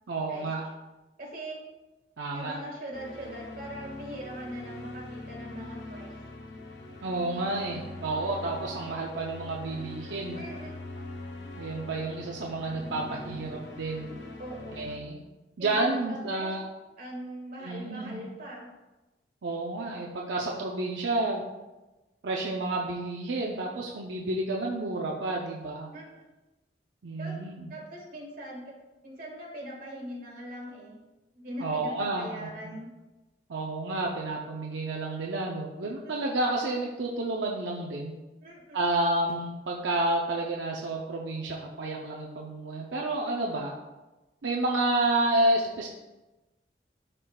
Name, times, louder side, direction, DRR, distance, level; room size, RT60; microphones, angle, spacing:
voice 1, 0.1-0.7 2.2-2.6 7.0-10.4 11.6-14.1 14.7-15.2 15.6-16.6 17.6-18.2 19.4-21.4 22.2-25.9 27.0-27.7 31.6-32.7 33.5-38.1 38.7-43.7 44.4-45.9, right 2 dB, 90° right, -1 dB, 0.6 m, -30 dB
voice 2, 1.2-1.6 2.3-6.1 10.3-10.7 14.4-14.9 15.6-16.5 17.0-18.7 25.9-26.2 27.2-27.4 27.7-28.8 29.0-31.0 31.3-32.9 35.8-36.3 38.4-38.8, equal, 55° right, -2 dB, 1.8 m, -41 dB
sound 1, 2.9-15.0, left 2 dB, 70° left, 0.7 m, -42 dB
11.0 x 3.8 x 2.3 m, 1.1 s
head